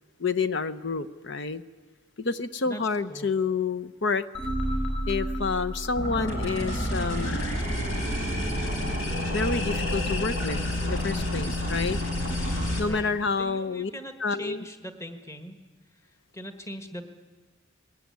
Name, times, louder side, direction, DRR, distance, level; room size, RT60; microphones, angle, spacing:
voice 1, 0.2-1.6 2.2-4.2 5.1-7.5 9.3-12.0 12.8-13.9 14.2-14.7, left 4 dB, 55° left, 13 dB, 0.7 m, -29 dB
sound 1, 4.3-7.4, right 1 dB, 30° left, 5.9 m, -32 dB
sound 2, 6.0-12.8, left 1 dB, 75° left, 4.4 m, -29 dB
voice 2, 12.8-14.1 14.4-15.6 16.3-17.0, equal, 15° left, 7 dB, 1.4 m, -40 dB
20.5 x 18.0 x 9.4 m, 1.4 s
head